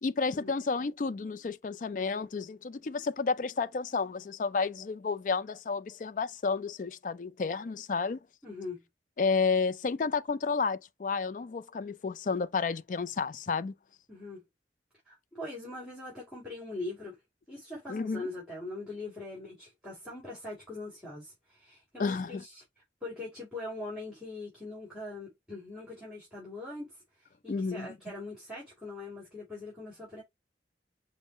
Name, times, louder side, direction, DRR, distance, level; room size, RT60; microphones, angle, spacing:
voice 1, 0.0-8.2 9.2-13.7 17.9-18.2 22.0-22.4 27.5-27.9, left 4 dB, 45° left, 0.4 m, -31 dB
voice 2, 8.4-8.8 14.1-14.4 15.1-17.2 17.5-22.6 23.0-27.0 27.4-30.2, left 2 dB, 5° right, 2.2 m, -42 dB
5.4 x 2.1 x 4.0 m
head